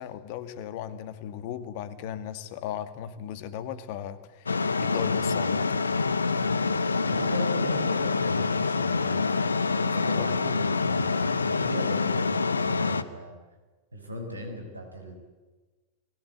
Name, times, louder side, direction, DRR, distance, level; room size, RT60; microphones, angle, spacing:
voice 1, 0.0-4.5 4.8-5.9 10.2-10.4, left 10 dB, 45° left, 13 dB, 2.0 m, -36 dB
sound 1, 4.5-13.0, left 4 dB, 75° left, 1.1 m, -26 dB
voice 2, 7.0-13.3 13.9-15.1, right 1 dB, 80° right, 4 dB, 6.1 m, -38 dB
29.5 x 20.5 x 8.2 m, 1.2 s
figure-of-eight pair, 90°, 0 cm